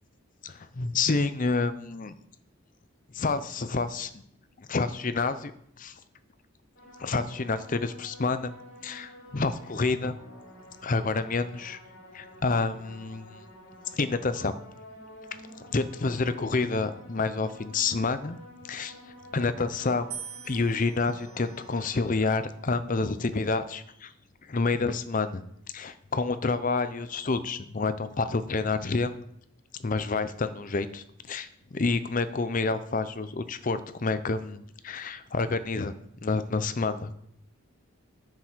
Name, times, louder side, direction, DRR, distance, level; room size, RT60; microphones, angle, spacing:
voice 1, 0.4-2.1 3.1-4.2 4.7-5.5 5.8-5.9 7.0-8.5 8.8-10.2 10.8-11.8 12.1-13.4 13.9-14.5 15.6-18.4 18.6-18.9 19.3-20.2 20.4-24.1 24.5-25.4 25.7-29.2 29.8-35.9 36.2-37.1, left 3 dB, 40° left, 12 dB, 0.6 m, -28 dB
sound 1, 6.7-22.3, equal, 60° left, 3.4 m, -50 dB
sound 2, 20.1-22.3 23.1-23.7, right 7 dB, 85° right, 2.1 m, -45 dB
7.7 x 7.2 x 6.1 m, 0.71 s
head